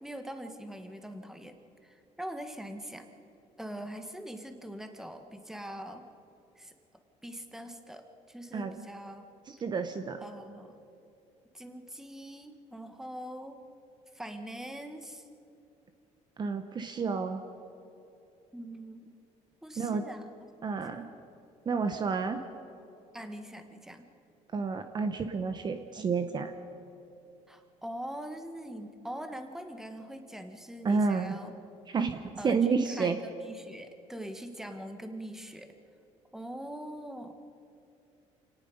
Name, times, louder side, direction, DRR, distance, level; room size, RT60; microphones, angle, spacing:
voice 1, 0.0-1.6 1.8-3.1 3.6-6.1 6.5-6.7 7.2-9.2 10.2-10.7 11.5-13.6 14.1-15.3 18.5-19.1 19.6-20.3 20.9-21.1 23.1-24.1 27.5-31.6 32.4-33.2 33.4-35.7 36.3-37.3, right 1 dB, 5° right, 6 dB, 1.6 m, -42 dB
voice 2, 9.5-10.2 16.4-17.4 19.8-20.0 20.6-21.1 21.6-22.4 24.5-26.5 30.8-31.4 31.9-33.2, right 5 dB, 35° right, 7 dB, 1.1 m, -30 dB
27.5 x 18.5 x 5.4 m, 2.7 s
cardioid pair, 125°, 13 cm